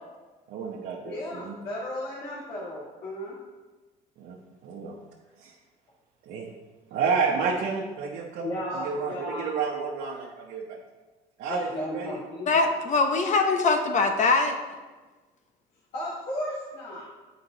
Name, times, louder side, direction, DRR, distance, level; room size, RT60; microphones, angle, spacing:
voice 1, 0.5-1.6 4.2-4.9 5.4-5.5 6.3-6.5 6.9-10.8 11.4-12.2, right 5 dB, 80° right, -3 dB, 1.0 m, -30 dB
voice 2, 1.0-3.4 8.4-9.5 11.5-12.6 15.9-17.1, left 1 dB, 80° left, -10 dB, 2.2 m, -34 dB
voice 3, 12.5-14.5, left 3 dB, 45° left, 5 dB, 0.9 m, -22 dB
8.6 x 5.1 x 4.0 m, 1.3 s
cardioid pair, 110°, 17 cm